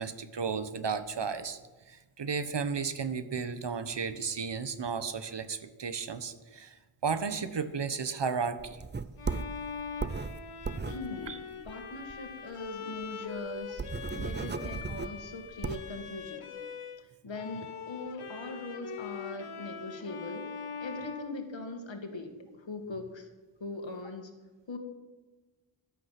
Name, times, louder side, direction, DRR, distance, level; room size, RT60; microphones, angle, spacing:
voice 1, 0.0-1.6 1.9-8.8 11.3-11.4, right 5 dB, 55° right, 11 dB, 1.0 m, -34 dB
sound 1, 8.6-12.3 12.6-12.7 13.0-13.1 13.5-16.0, right 4 dB, 20° right, 0.5 m, -36 dB
Bowed string instrument, 9.2-17.0 17.3-22.1, left 6 dB, 85° left, 1.1 m, -42 dB
voice 2, 10.9-11.4 11.6-13.8 14.1-16.4 17.2-23.3 23.6-24.3 24.7-24.8, left 2 dB, 60° left, 4 dB, 2.1 m, -41 dB
14.0 x 11.5 x 5.9 m, 1.2 s
wide cardioid pair, 90°, 50 cm